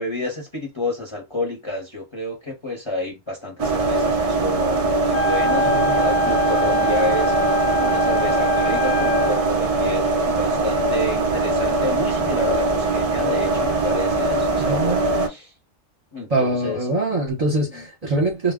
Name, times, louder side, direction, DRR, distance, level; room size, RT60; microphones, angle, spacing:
voice 1, 0.0-15.5 16.1-17.2 17.7-17.8, left 2 dB, 30° left, 0.7 m, -30 dB
sound 1, 3.6-15.3, right 2 dB, 65° right, 0.3 m, -21 dB
Wind instrument woodwind instrument, 5.1-9.5, left 1 dB, 65° left, 0.8 m, -23 dB
voice 2, 5.6-6.0 14.5-15.3 16.3-18.5, right 2 dB, 35° right, 0.7 m, -24 dB
2.1 x 2.1 x 3.4 m
omnidirectional pair, 1.3 m